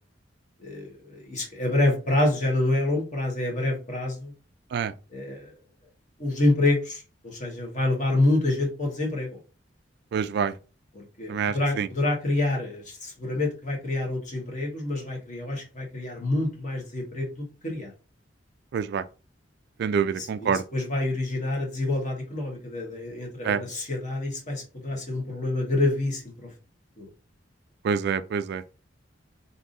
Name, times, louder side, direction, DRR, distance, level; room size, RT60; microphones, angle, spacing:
voice 1, 0.6-4.3 5.1-5.5 6.2-9.4 10.9-17.9 20.0-26.5 27.0-27.1, left 2 dB, 40° left, 1.4 m, -27 dB
voice 2, 10.1-10.5 11.3-11.9 18.7-19.0 19.8-20.6 23.4-23.6 27.8-28.6, right 6 dB, 60° right, 0.3 m, -26 dB
3.5 x 2.7 x 3.9 m
head